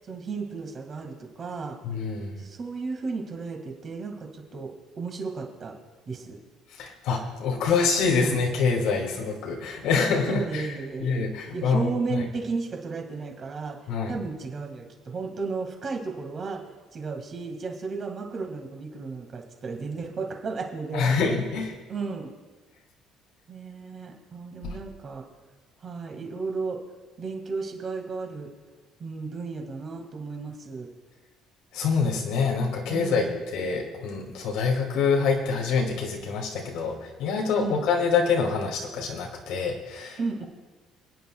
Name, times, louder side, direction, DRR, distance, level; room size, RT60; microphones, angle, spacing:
voice 1, 0.1-1.8 2.4-5.8 6.1-6.4 8.1-8.3 10.3-11.3 11.5-16.6 16.9-21.1 21.9-22.3 23.5-25.2 25.8-26.8 27.2-28.5 29.0-30.9 32.9-33.4 37.6-37.8 40.2-40.5, right 4 dB, 30° right, 3 dB, 1.7 m, -34 dB
voice 2, 1.8-2.5 6.7-10.7 11.0-12.3 13.9-14.2 20.9-21.7 24.6-24.7 31.7-40.2, left 5 dB, 85° left, 0 dB, 2.2 m, -26 dB
28.0 x 9.6 x 2.2 m, 1.3 s
cardioid pair, 165°, 0 cm